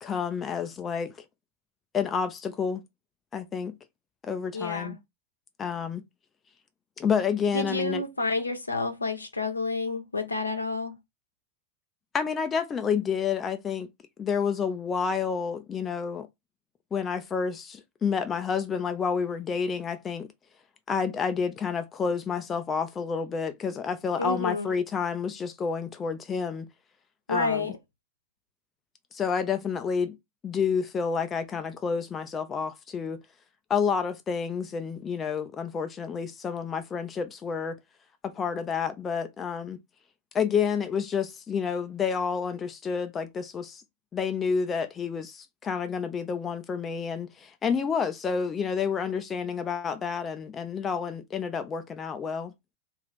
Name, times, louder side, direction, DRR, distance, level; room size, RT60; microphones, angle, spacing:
voice 1, 0.0-1.1 1.9-2.8 3.3-3.8 4.2-5.0 5.6-6.0 7.0-8.0 12.1-13.9 14.2-16.3 16.9-20.3 20.9-26.7 27.3-27.7 29.1-30.2 30.4-33.2 33.7-37.8 38.2-39.8 40.3-43.8 44.1-52.5, left 6 dB, 20° left, 0.4 m, -29 dB
voice 2, 4.5-4.9 7.5-11.0 24.2-24.7 27.3-27.7, left 3 dB, 80° left, 0.7 m, -29 dB
2.5 x 2.4 x 3.4 m
figure-of-eight pair, 90°, 0 cm